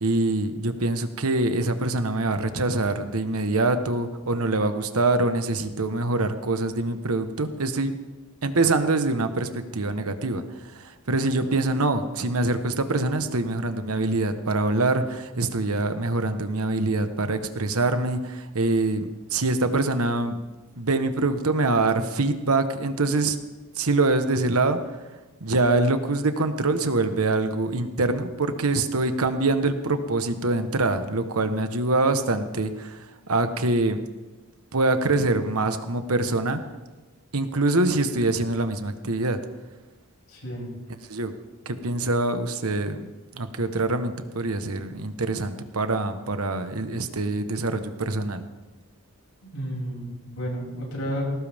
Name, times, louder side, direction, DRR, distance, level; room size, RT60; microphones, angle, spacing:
voice 1, 0.0-8.0 8.4-10.4 10.7-20.4 20.8-23.4 23.8-24.8 25.4-34.0 34.7-36.6 37.3-39.4 41.1-41.3 41.6-48.4, right 2 dB, 80° right, 8 dB, 1.3 m, -24 dB
voice 2, 40.3-40.7 49.4-51.2, equal, 80° left, -3 dB, 7.0 m, -32 dB
21.0 x 18.0 x 3.6 m, 1.2 s
head